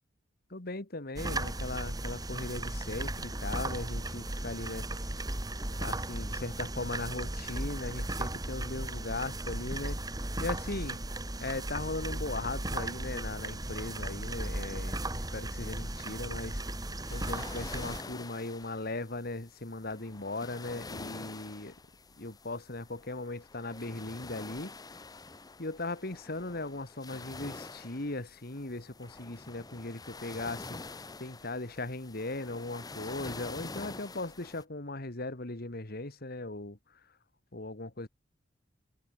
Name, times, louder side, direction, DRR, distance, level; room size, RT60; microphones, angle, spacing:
voice 1, 0.5-4.9 5.8-10.0 10.4-11.0 11.4-16.6 17.1-21.7 22.2-24.7 25.6-30.8 31.2-36.8 37.5-38.1, left 2 dB, 55° left, 2.2 m, -38 dB
sound 1, 1.2-18.0, right 1 dB, 20° right, 1.9 m, -36 dB
sound 2, 15.6-34.6, left 3 dB, 20° left, 0.8 m, -47 dB
head